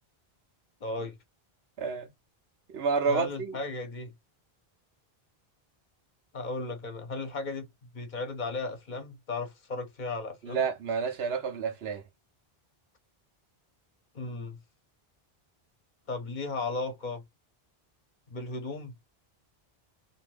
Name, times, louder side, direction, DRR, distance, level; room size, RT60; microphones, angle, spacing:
voice 1, 0.8-1.2 3.1-4.1 6.3-7.7 7.9-10.6 14.1-14.6 16.1-17.2 18.3-18.9, left 3 dB, 50° left, 0.8 m, -35 dB
voice 2, 1.8-2.1 2.7-3.5 10.4-12.0, right 5 dB, 85° right, 1.0 m, -29 dB
2.7 x 2.5 x 3.3 m
omnidirectional pair, 1.0 m